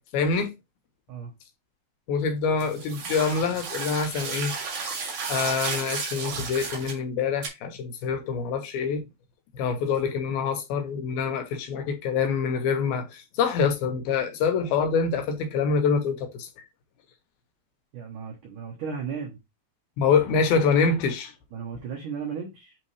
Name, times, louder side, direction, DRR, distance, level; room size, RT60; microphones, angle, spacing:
voice 1, 0.1-0.5 2.1-4.5 5.3-9.1 9.5-16.5 20.0-21.3, left 5 dB, 70° left, 2.5 m, -25 dB
sound 1, 2.6-7.0 7.4-7.5, right 5 dB, 50° right, 2.6 m, -33 dB
voice 2, 17.9-19.4 21.5-22.8, right 6 dB, 70° right, 2.0 m, -35 dB
8.8 x 3.4 x 3.3 m
omnidirectional pair, 5.2 m